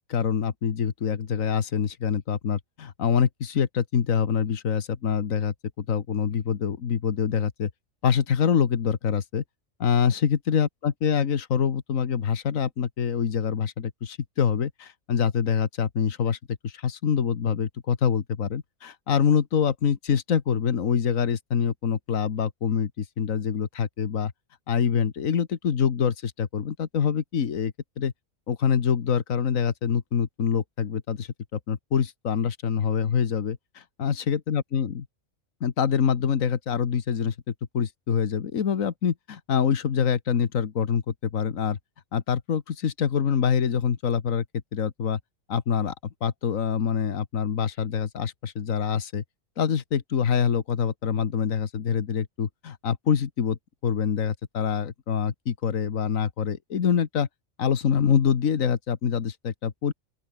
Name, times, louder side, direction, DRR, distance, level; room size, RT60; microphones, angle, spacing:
voice 1, 0.1-7.7 8.0-9.4 9.8-16.4 16.6-24.3 24.7-28.1 28.5-34.9 35.6-41.8 42.1-44.5 44.7-45.2 45.5-46.0 46.2-49.2 49.6-53.6 53.8-57.3 57.6-59.9, left 7 dB, 85° left, 1.7 m, -25 dB
open air
omnidirectional pair, 1.4 m